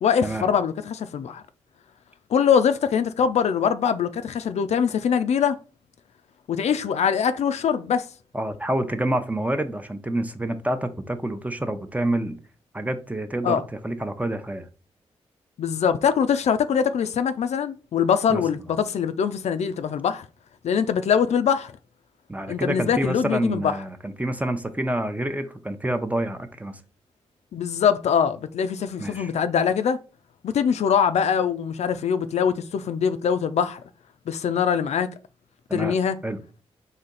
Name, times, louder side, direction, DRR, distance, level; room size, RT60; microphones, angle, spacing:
voice 1, 0.0-1.4 2.3-5.6 6.5-8.1 13.4-13.6 15.6-20.3 20.6-21.7 22.5-23.7 27.5-30.0 30.4-33.8 34.3-35.1 35.7-36.2, left 7 dB, 70° left, 0.4 m, -23 dB
voice 2, 8.3-12.4 12.7-14.7 18.3-18.4 22.3-26.8 29.0-29.3 35.7-36.0 36.2-36.4, right 1 dB, 10° right, 0.7 m, -28 dB
4.2 x 2.8 x 3.9 m
supercardioid pair, 45°, 12 cm